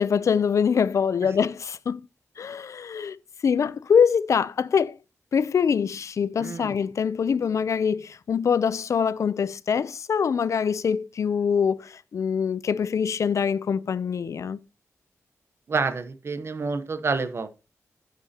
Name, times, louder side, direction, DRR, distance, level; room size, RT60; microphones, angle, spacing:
voice 1, 0.0-2.0 2.4-3.2 3.4-5.0 5.3-14.6, left 6 dB, 65° left, 0.5 m, -24 dB
voice 2, 6.4-6.7 15.7-17.5, right 4 dB, 50° right, 1.0 m, -28 dB
10.5 x 9.3 x 2.8 m
wide cardioid pair, 125°, 6 cm